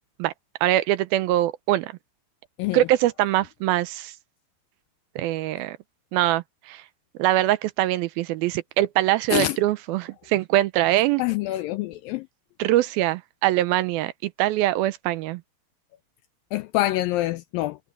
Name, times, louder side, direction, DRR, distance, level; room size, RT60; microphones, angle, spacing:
voice 1, 0.6-1.9 2.7-4.1 5.2-5.8 6.1-6.8 7.2-11.2 12.6-15.4, right 15 dB, 80° right, 2.3 m, -23 dB
voice 2, 11.2-12.3 16.5-17.8, left 16 dB, 80° left, 2.1 m, -25 dB
omnidirectional pair, 4.6 m